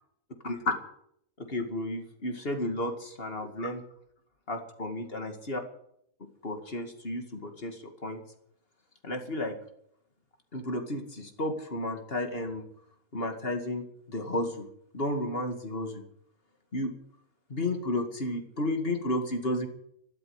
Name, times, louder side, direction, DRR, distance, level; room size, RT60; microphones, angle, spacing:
voice 1, 1.5-3.8 4.5-5.6 6.4-8.2 9.0-9.5 10.5-12.6 13.1-14.7 14.9-16.0 16.7-16.9 17.5-19.7, left 1 dB, 40° left, 5 dB, 2.4 m, -32 dB
13.0 x 12.5 x 8.2 m, 0.73 s
omnidirectional pair, 1.6 m